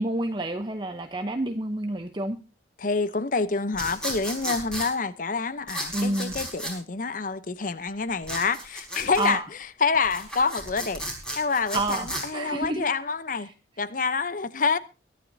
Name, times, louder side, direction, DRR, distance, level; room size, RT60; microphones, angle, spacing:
voice 1, 0.0-2.4 5.9-6.3 9.2-9.4 11.7-12.9 13.5-13.6, right 2 dB, 25° right, 0.8 m, -29 dB
voice 2, 2.8-9.4 9.8-11.0 11.4-13.5 13.8-14.8, left 4 dB, 45° left, 0.8 m, -27 dB
sound 1, 3.7-4.9 5.7-6.7 8.2-9.3 9.9-12.2, right 1 dB, 5° left, 4.7 m, -34 dB
22.5 x 12.0 x 2.7 m
head